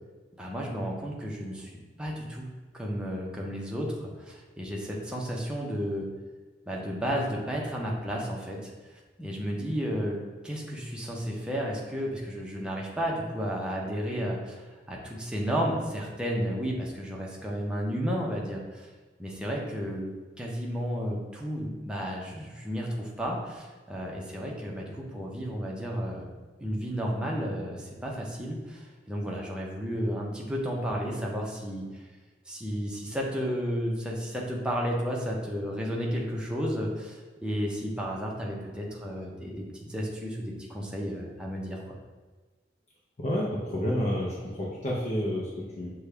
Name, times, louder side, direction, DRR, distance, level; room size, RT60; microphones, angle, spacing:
voice 1, 0.4-1.7 2.0-2.5 2.7-6.1 6.7-8.7 9.2-10.2 10.4-18.9 19.2-26.3 26.6-31.8 32.5-42.0, equal, 5° right, -3 dB, 0.6 m, -32 dB
voice 2, 43.2-45.9, equal, 40° left, -4 dB, 0.6 m, -30 dB
6.5 x 2.2 x 3.3 m, 1.4 s
head